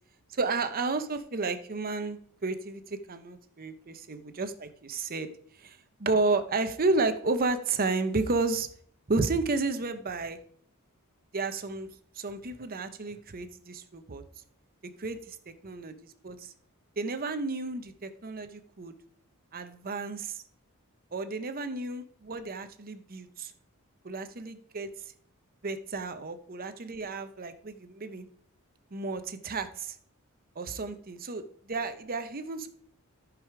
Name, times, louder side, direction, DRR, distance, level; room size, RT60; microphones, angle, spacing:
voice 1, 0.3-5.3 5.6-8.7 9.1-10.4 11.3-11.9 12.1-14.2 15.0-16.5 17.0-18.9 19.5-20.4 21.1-23.5 24.0-24.9 25.6-28.3 28.9-30.0 30.6-32.7, right 3 dB, 40° right, 10 dB, 0.8 m, -32 dB
14.0 x 4.9 x 4.8 m, 0.62 s
head